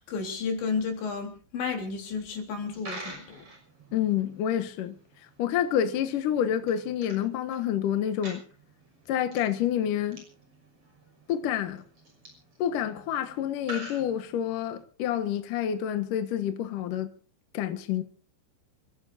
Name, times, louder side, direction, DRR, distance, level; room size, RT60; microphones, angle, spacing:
voice 1, 0.0-3.5, left 5 dB, 75° left, 5.8 m, -32 dB
Coin (dropping), 2.5-14.8, right 1 dB, 30° right, 7.0 m, -48 dB
voice 2, 3.9-4.9 5.4-8.4 9.1-10.2 11.3-11.8 12.6-17.1 17.5-18.0, left 10 dB, 60° left, 2.5 m, -28 dB
28.0 x 16.5 x 2.7 m
omnidirectional pair, 5.2 m